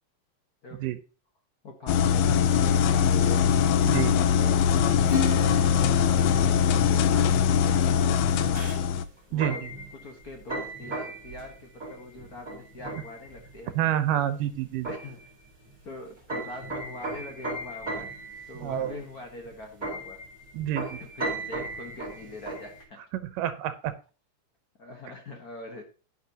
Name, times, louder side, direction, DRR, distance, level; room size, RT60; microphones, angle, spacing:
voice 1, 1.6-3.5 4.3-4.7 6.1-8.9 9.3-9.7 10.0-14.0 14.9-15.2 15.8-20.2 20.8-23.0 24.8-25.8, left 2 dB, 60° left, 3 dB, 0.9 m, -43 dB
sound 1, 1.9-9.0, left 8 dB, 90° left, 1.5 m, -22 dB
voice 2, 3.8-4.2 9.3-9.7 13.8-14.9 18.6-18.9 20.5-20.9 23.1-23.9, right 12 dB, 85° right, 11 dB, 2.4 m, -28 dB
Acoustic guitar / Strum, 5.1-8.0, left 2 dB, 25° left, 1.3 m, -35 dB
sound 2, 8.2-22.8, right 2 dB, 15° right, 4.3 m, -37 dB
10.5 x 10.0 x 2.9 m, 0.35 s
omnidirectional pair, 3.7 m